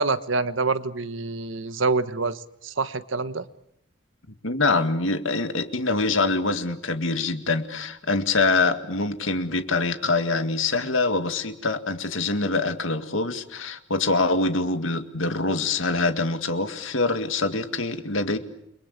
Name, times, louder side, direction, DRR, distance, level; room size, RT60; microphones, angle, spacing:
voice 1, 0.0-3.4, right 3 dB, 75° right, 12 dB, 1.3 m, -26 dB
voice 2, 4.4-18.4, left 3 dB, 80° left, 8 dB, 2.0 m, -24 dB
29.5 x 23.0 x 8.3 m, 0.77 s
head